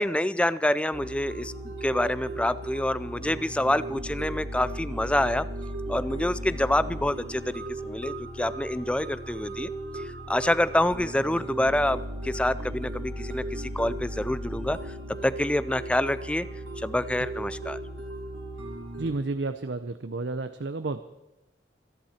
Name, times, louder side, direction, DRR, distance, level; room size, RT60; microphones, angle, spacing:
voice 1, 0.0-5.5 5.9-14.8 15.2-16.5 16.8-17.8, left 1 dB, 5° left, 15 dB, 0.4 m, -27 dB
sound 1, 0.9-19.1, right 1 dB, 80° right, 3.4 m, -36 dB
voice 2, 19.0-21.0, right 3 dB, 65° right, 10 dB, 0.7 m, -31 dB
26.0 x 10.5 x 4.4 m, 0.93 s
head